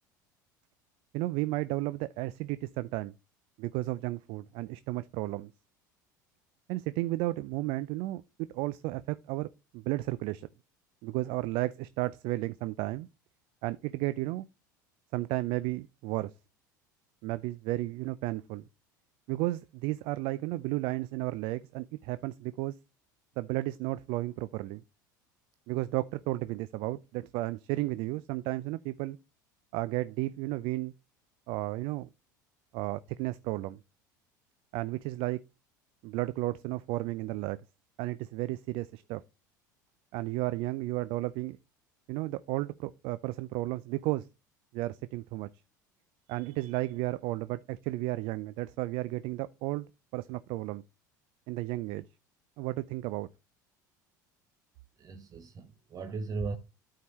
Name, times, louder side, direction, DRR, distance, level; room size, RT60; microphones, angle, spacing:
voice 1, 1.1-3.1 3.6-5.5 6.7-8.2 8.5-9.5 9.7-10.5 11.0-13.1 13.6-14.5 15.1-16.3 17.2-18.6 19.3-22.7 23.4-24.8 25.7-29.2 29.7-30.9 31.5-32.1 32.7-33.8 34.7-35.4 36.0-37.6 38.0-39.2 40.1-41.6 42.1-44.3 44.7-45.5 46.3-49.9 50.1-50.8 51.5-52.0 52.6-53.3, right 18 dB, 60° right, 0.4 m, -33 dB
voice 2, 55.0-56.6, right 4 dB, 35° right, 0.9 m, -37 dB
12.5 x 4.6 x 3.1 m
hypercardioid pair, 75°, 10 cm